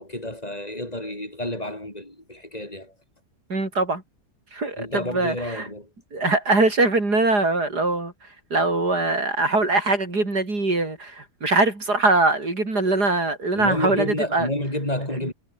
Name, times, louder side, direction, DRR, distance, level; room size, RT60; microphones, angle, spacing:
voice 1, 0.0-2.9 4.8-5.9 13.5-15.3, left 1 dB, 20° left, 7.5 m, -30 dB
voice 2, 3.5-4.0 4.5-5.7 6.1-8.1 8.5-14.5, right 2 dB, 70° right, 6.4 m, -22 dB
omnidirectional pair, 1.8 m